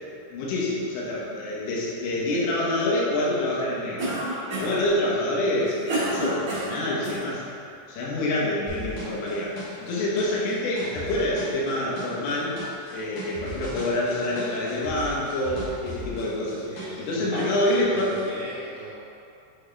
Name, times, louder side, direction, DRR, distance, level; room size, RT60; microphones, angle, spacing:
voice 1, 0.0-4.1 4.5-7.4 7.9-12.6 12.9-16.6 17.0-18.2, left 1 dB, 75° left, -6 dB, 3.3 m, -26 dB
Cough, 4.0-4.9 5.4-7.2, right 1 dB, 65° right, 1.4 m, -29 dB
sound 1, 8.7-17.1 17.4-18.2, equal, 60° left, 2.5 m, -39 dB
voice 2, 16.6-18.9, right 2 dB, 80° right, -10 dB, 2.9 m, -38 dB
8.5 x 4.2 x 3.3 m, 2.7 s
omnidirectional pair, 5.2 m